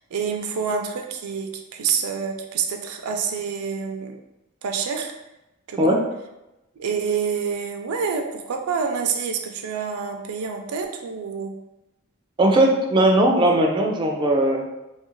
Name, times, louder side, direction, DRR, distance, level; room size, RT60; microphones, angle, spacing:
voice 1, 0.1-4.2 4.6-5.1 5.7-6.0 6.8-11.6, right 6 dB, 90° right, 4 dB, 0.4 m, -27 dB
voice 2, 12.4-14.7, right 1 dB, 20° right, 1 dB, 0.3 m, -18 dB
2.7 x 2.4 x 3.0 m, 0.96 s
head